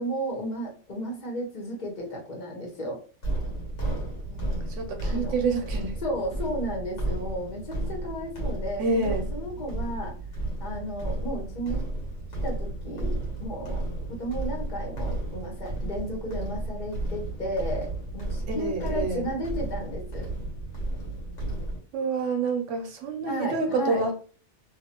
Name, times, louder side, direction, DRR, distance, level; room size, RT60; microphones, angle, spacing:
voice 1, 0.0-3.0 5.0-5.3 6.0-10.1 10.6-11.9 12.4-17.9 18.1-20.3 23.2-24.0, equal, 40° left, 1.0 m, -33 dB
sound 1, 3.2-21.8, right 2 dB, 85° left, 1.5 m, -33 dB
voice 2, 4.3-6.0 8.8-9.3 18.5-19.3 21.9-24.1, right 3 dB, 85° right, 1.0 m, -28 dB
2.6 x 2.5 x 2.8 m
omnidirectional pair, 1.2 m